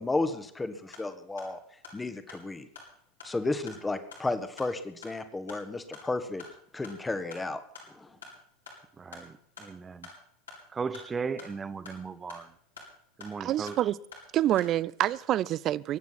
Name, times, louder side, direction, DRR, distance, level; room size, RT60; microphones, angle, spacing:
voice 1, 0.0-1.6 1.9-2.7 3.2-6.4 6.7-7.6 7.9-8.2, left 2 dB, 10° left, 1.7 m, -33 dB
sound 1, 0.9-15.2, left 4 dB, 75° left, 5.3 m, -51 dB
voice 2, 9.0-10.1 10.7-12.5 13.2-13.8, right 5 dB, 20° right, 1.1 m, -37 dB
voice 3, 13.4-14.0 14.3-16.0, right 13 dB, 40° right, 0.5 m, -27 dB
23.0 x 9.3 x 5.9 m
figure-of-eight pair, 80°, 0 cm